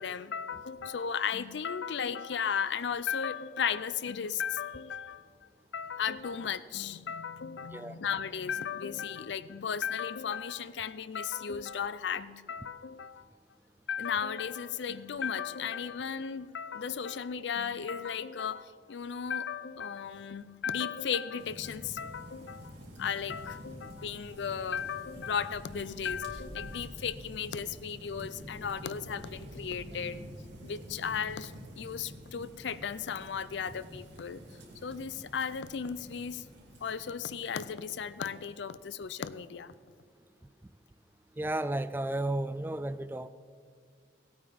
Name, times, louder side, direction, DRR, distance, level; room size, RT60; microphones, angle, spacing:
voice 1, 0.0-5.3 5.7-13.3 13.9-30.2 30.6-34.4 34.8-36.4 36.8-39.7, left 7 dB, 80° left, 15 dB, 0.5 m, -35 dB
sound 1, 21.4-38.6, equal, 80° right, 2.8 m, -48 dB
voice 2, 41.4-43.3, right 1 dB, 10° right, 14 dB, 0.3 m, -33 dB
16.0 x 8.8 x 5.1 m, 2.1 s
head